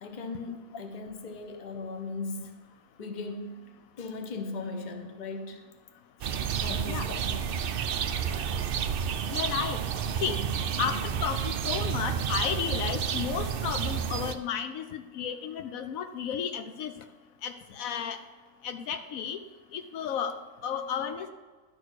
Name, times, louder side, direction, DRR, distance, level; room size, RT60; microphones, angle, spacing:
voice 1, 0.0-2.5 3.0-3.6 4.0-5.6 6.6-7.6 10.8-11.0, left 3 dB, 40° left, 6 dB, 0.8 m, -38 dB
sound 1, 6.2-14.3, right 8 dB, 65° right, 0.5 m, -30 dB
voice 2, 9.3-9.8 10.2-10.4 10.8-16.9 17.4-18.2 18.6-19.4 19.7-20.3 20.6-21.3, left 8 dB, 75° left, 8 dB, 1.0 m, -33 dB
11.0 x 4.5 x 6.2 m, 1.4 s
omnidirectional pair, 1.5 m